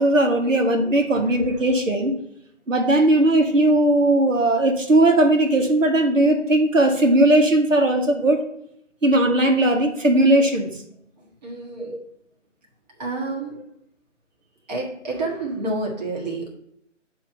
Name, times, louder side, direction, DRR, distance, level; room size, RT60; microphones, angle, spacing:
voice 1, 0.0-2.1 2.7-8.4 9.0-10.7, right 1 dB, 85° right, 2 dB, 1.4 m, -18 dB
voice 2, 11.4-11.9 13.0-13.6 14.7-16.5, right 2 dB, 35° right, -2 dB, 1.6 m, -29 dB
8.7 x 3.1 x 5.6 m, 0.75 s
figure-of-eight pair, 160°, 38 cm